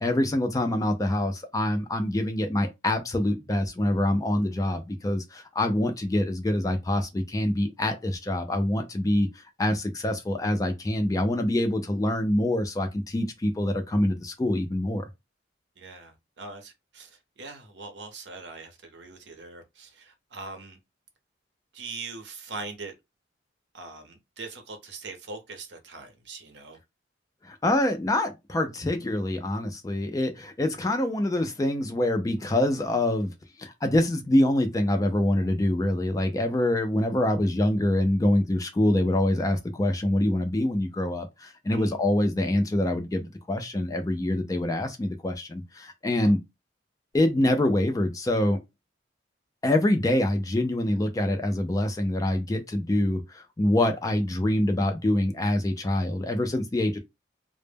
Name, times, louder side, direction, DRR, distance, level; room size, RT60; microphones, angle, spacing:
voice 1, 0.0-15.0 27.4-33.3 33.6-46.4 47.1-48.6 49.6-57.0, left 1 dB, 20° left, 0.3 m, -25 dB
voice 2, 15.8-20.8 21.7-22.9 23.7-26.8 41.7-42.0 46.2-46.3, right 3 dB, 65° right, 0.7 m, -42 dB
2.0 x 2.0 x 3.2 m
head